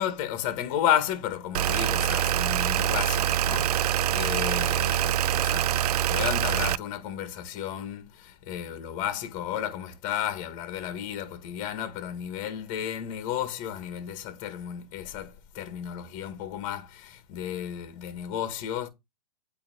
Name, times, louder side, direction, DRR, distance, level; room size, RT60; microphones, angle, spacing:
voice 1, 0.0-18.9, left 10 dB, 40° left, 2.0 m, -33 dB
sound 1, 1.5-6.8, right 11 dB, 70° right, 0.4 m, -25 dB
8.8 x 3.5 x 5.1 m
hypercardioid pair, 125°, 21 cm